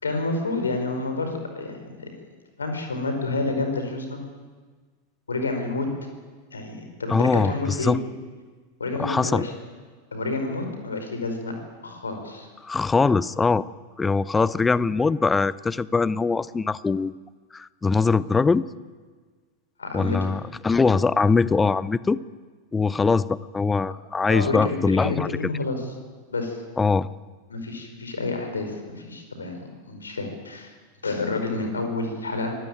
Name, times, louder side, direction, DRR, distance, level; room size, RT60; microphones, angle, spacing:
voice 1, 0.0-2.1 2.6-4.2 5.3-5.9 6.5-8.0 8.8-9.5 10.1-11.5 11.8-12.5 19.8-20.3 24.3-25.8 26.3-26.6 27.5-30.7 31.0-32.6, left 3 dB, 75° left, 5 dB, 5.0 m, -29 dB
voice 2, 7.1-8.0 9.0-9.4 12.6-13.6 14.0-17.2 17.5-18.7 19.9-22.2 22.7-25.3 26.8-27.1, left 4 dB, 15° left, 20 dB, 0.7 m, -22 dB
24.5 x 17.5 x 9.1 m, 1.4 s
figure-of-eight pair, 90°, 0 cm